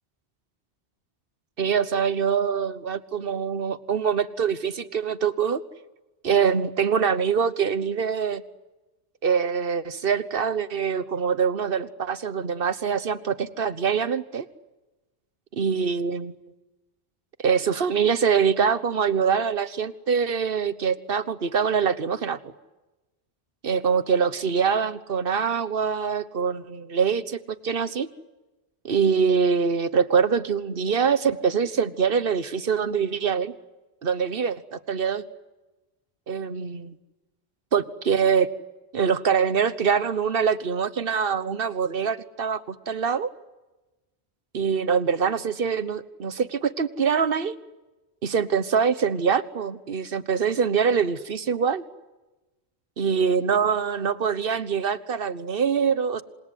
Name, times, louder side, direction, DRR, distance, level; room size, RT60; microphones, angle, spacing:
voice 1, 1.6-5.6 6.2-8.4 9.2-14.5 15.6-16.3 17.4-22.5 23.6-28.1 28.8-33.5 34.0-35.2 36.3-36.9 37.7-38.5 38.9-43.3 44.5-47.6 48.2-51.8 53.0-56.2, right 6 dB, 65° right, 14 dB, 1.3 m, -24 dB
28.0 x 26.5 x 8.1 m, 1.1 s
omnidirectional pair, 1.0 m